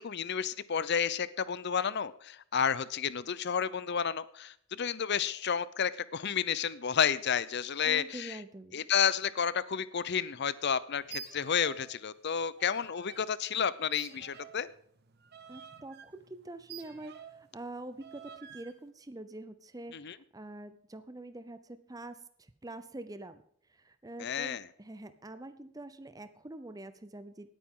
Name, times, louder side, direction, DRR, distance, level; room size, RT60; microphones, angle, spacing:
voice 1, 0.0-8.4 8.7-14.7 19.9-20.2 24.2-24.6, left 7 dB, 55° left, 17 dB, 0.6 m, -31 dB
voice 2, 7.8-8.8 15.5-23.4 23.7-27.5, right 2 dB, 20° right, 11 dB, 0.7 m, -45 dB
sound 1, 11.0-11.9 12.2-13.2 13.9-17.5 18.0-18.7, right 7 dB, 50° right, 1.2 m, -49 dB
19.0 x 9.1 x 3.8 m, 0.64 s
head